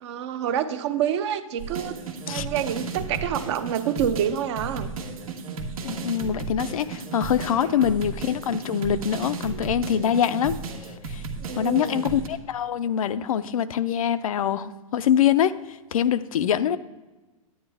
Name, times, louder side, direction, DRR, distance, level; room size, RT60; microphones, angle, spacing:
voice 1, 0.0-1.9 2.3-4.9 7.6-7.9 11.4-12.0, right 9 dB, 55° right, 10 dB, 0.7 m, -27 dB
sound 1, 1.6-12.3, right 4 dB, 85° right, 1.4 m, -34 dB
voice 2, 5.8-10.6 11.1-11.2 11.6-16.8, left 9 dB, 80° left, 12 dB, 0.5 m, -24 dB
9.5 x 9.3 x 3.4 m, 1.2 s
hypercardioid pair, 135°, 18 cm